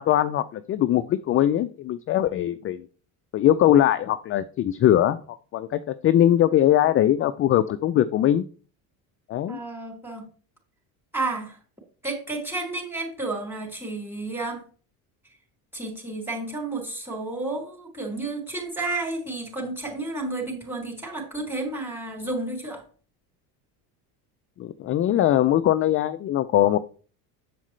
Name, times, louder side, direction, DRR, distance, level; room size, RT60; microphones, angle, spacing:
voice 1, 0.0-2.8 3.3-8.4 9.3-9.6 24.6-26.8, left 12 dB, 30° left, 11 dB, 0.4 m, -21 dB
voice 2, 9.4-10.3 11.1-11.6 12.0-14.6 15.7-22.8 25.1-25.2, right 2 dB, 5° right, -1 dB, 3.6 m, -31 dB
7.5 x 7.2 x 3.2 m, 0.40 s
supercardioid pair, 95°, 44 cm